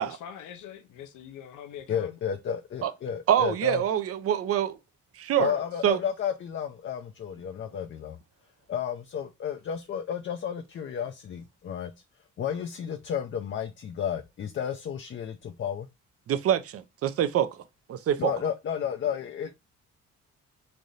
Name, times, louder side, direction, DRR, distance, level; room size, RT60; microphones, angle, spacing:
voice 1, 0.0-2.2, left 9 dB, 80° left, 0.7 m, -43 dB
voice 2, 1.9-3.8 5.4-8.2 8.7-11.9 12.4-15.9 18.2-19.5, left 8 dB, 40° left, 0.5 m, -32 dB
voice 3, 3.3-4.8 5.2-5.6 5.8-6.0 16.3-17.5 17.9-18.3, right 10 dB, 50° right, 0.5 m, -25 dB
3.3 x 2.6 x 3.9 m
cardioid pair, 90°, 30 cm